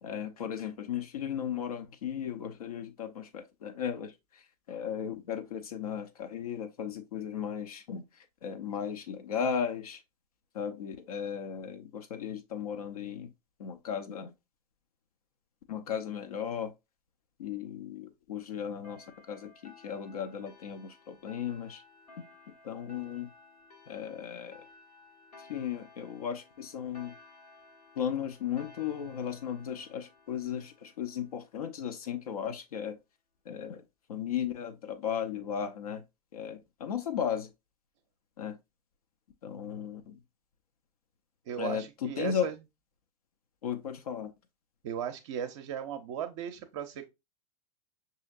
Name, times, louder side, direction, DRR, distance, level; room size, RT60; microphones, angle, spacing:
voice 1, 0.0-10.0 10.5-13.3 13.6-14.3 15.7-16.7 17.4-21.8 22.6-23.3 23.9-24.6 25.4-27.1 28.0-33.0 33.5-33.8 34.1-36.0 36.3-37.5 38.4-38.6 39.4-40.2 41.6-42.5 43.6-44.3, left 8 dB, 65° left, 0.5 m, -36 dB
sound 1, 18.8-31.9, left 3 dB, 80° left, 1.2 m, -57 dB
voice 2, 41.5-42.5 44.8-47.1, right 9 dB, 50° right, 0.5 m, -37 dB
5.6 x 2.8 x 2.4 m
figure-of-eight pair, 95°, 20 cm